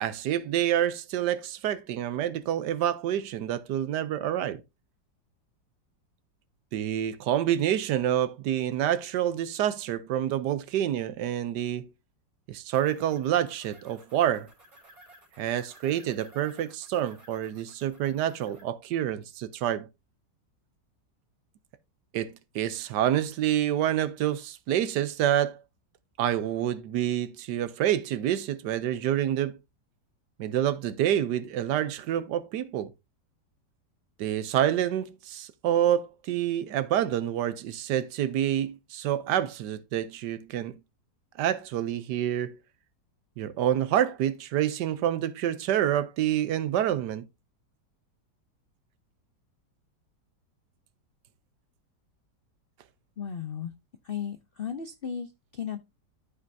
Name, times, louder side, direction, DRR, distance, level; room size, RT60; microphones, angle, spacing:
voice 1, 0.0-4.6 6.7-11.9 12.5-14.5 15.4-19.9 22.1-25.6 26.2-29.6 30.4-32.9 34.2-40.8 41.4-42.6 43.4-47.3, right 11 dB, 75° right, 1.3 m, -27 dB
sound 1, 12.7-18.6, right 1 dB, 50° right, 4.1 m, -56 dB
voice 2, 53.2-53.7 54.0-55.8, left 8 dB, 75° left, 0.5 m, -35 dB
12.5 x 5.3 x 2.6 m
omnidirectional pair, 1.9 m